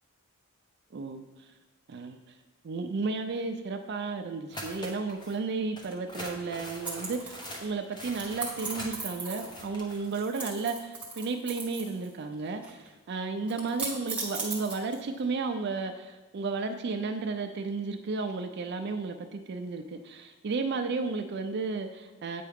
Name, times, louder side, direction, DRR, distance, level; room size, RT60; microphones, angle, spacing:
voice 1, 0.9-1.5 1.9-2.2 2.6-22.4, right 4 dB, 50° right, 6 dB, 0.4 m, -33 dB
sound 1, 4.5-5.4 5.8-10.0, equal, 20° left, 0.9 m, -43 dB
sound 2, 6.8-7.6 8.1-9.6 9.9-12.1 12.3-12.9 13.5-15.2, right 3 dB, 5° right, 1.0 m, -37 dB
8.4 x 4.6 x 3.5 m, 1.2 s
head